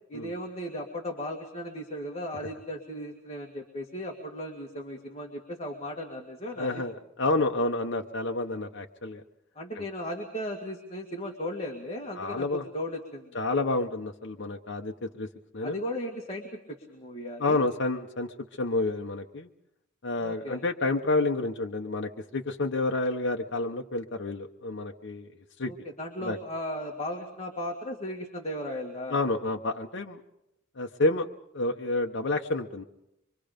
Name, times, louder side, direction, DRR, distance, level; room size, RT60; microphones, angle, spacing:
voice 1, 0.1-6.8 9.6-13.3 15.6-17.6 20.2-20.6 25.7-29.2, left 1 dB, 30° left, 0 dB, 2.2 m, -36 dB
voice 2, 6.6-9.2 9.8-9.9 12.1-12.6 13.3-15.3 15.5-15.8 17.4-19.5 20.0-25.3 25.6-25.7 26.2-26.4 29.1-30.2 30.8-31.3 31.5-32.8, left 2 dB, 65° left, 2 dB, 1.0 m, -29 dB
25.0 x 24.5 x 5.2 m, 0.84 s
head